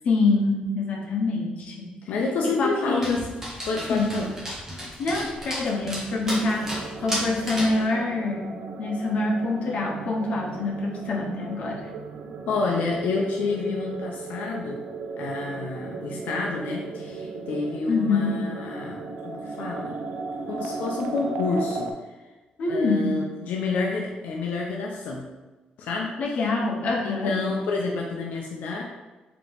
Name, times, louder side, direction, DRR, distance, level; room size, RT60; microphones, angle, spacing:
voice 1, 0.0-2.1 2.6-3.2 3.9-4.2 5.0-11.9 17.9-18.4 22.6-23.2 26.2-27.3, left 3 dB, 50° left, -1 dB, 0.8 m, -26 dB
voice 2, 2.1-3.3 3.7-4.3 12.5-14.8 15.2-20.0 20.5-21.9 22.7-25.2 25.8-26.4 27.0-28.8, left 3 dB, 80° left, -1 dB, 0.5 m, -29 dB
Dog, 3.0-7.8, equal, 15° right, 1.1 m, -34 dB
sound 1, 6.2-21.9, right 4 dB, 80° right, 0.4 m, -36 dB
3.9 x 2.9 x 3.4 m, 1.2 s
cardioid pair, 165°, 3 cm